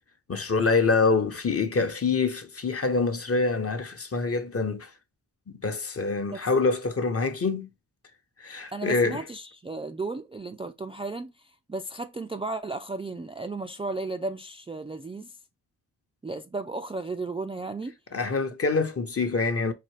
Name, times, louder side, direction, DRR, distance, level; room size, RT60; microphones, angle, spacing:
voice 1, 0.3-4.9 5.5-7.7 8.4-9.2 18.1-19.7, left 4 dB, 35° left, 0.9 m, -25 dB
voice 2, 8.7-11.3 11.7-15.4 16.2-17.9, right 3 dB, 15° right, 0.4 m, -34 dB
4.1 x 2.8 x 3.2 m
supercardioid pair, 40°, 41 cm